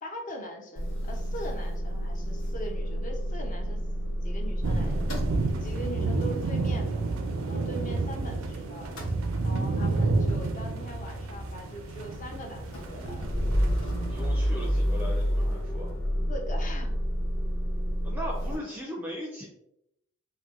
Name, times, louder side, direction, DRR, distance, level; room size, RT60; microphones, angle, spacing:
voice 1, 0.0-3.8 4.2-5.3 5.6-7.0 7.5-9.0 9.4-13.3 16.3-17.0, equal, 40° left, 2 dB, 0.5 m, -41 dB
Motor vehicle (road) / Engine starting / Idling, 0.8-8.5 8.7-18.6, equal, 80° left, 0.9 m, -31 dB
sound 1, 4.6-14.7, right 3 dB, 80° right, 0.4 m, -30 dB
voice 2, 14.1-16.0 18.0-19.5, equal, 10° right, -3 dB, 0.4 m, -38 dB
4.1 x 2.2 x 2.4 m, 0.78 s
head